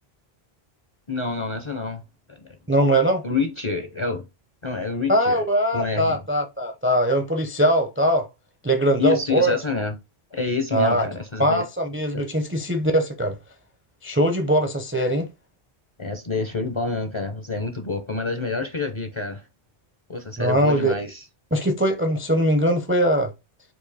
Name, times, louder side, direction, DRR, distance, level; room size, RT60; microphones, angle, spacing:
voice 1, 1.1-2.0 2.3-2.6 3.2-4.2 4.6-5.4 5.7-6.2 9.0-10.0 10.3-11.6 12.1-12.2 16.0-19.4 20.1-21.2, left 4 dB, 40° left, 0.5 m, -27 dB
voice 2, 2.7-3.2 5.1-8.3 8.6-9.5 10.7-11.0 11.4-13.4 14.0-15.3 20.4-20.9 21.5-23.3, right 1 dB, 15° right, 0.4 m, -21 dB
4.7 x 2.6 x 4.0 m
omnidirectional pair, 1.1 m